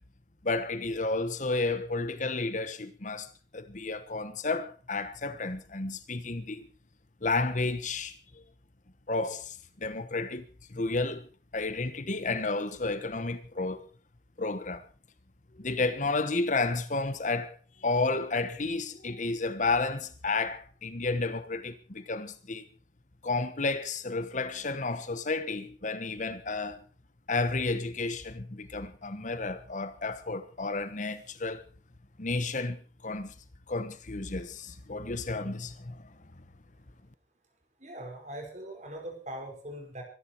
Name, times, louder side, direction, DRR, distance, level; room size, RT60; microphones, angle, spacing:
voice 1, 0.4-6.7 7.2-8.4 9.1-13.8 14.4-14.8 15.6-22.7 23.2-26.9 27.3-31.6 32.2-33.3 33.7-36.1, left 3 dB, 45° left, 1.2 m, -32 dB
voice 2, 37.8-40.0, right 1 dB, 40° right, 5.0 m, -41 dB
24.0 x 11.5 x 4.6 m
head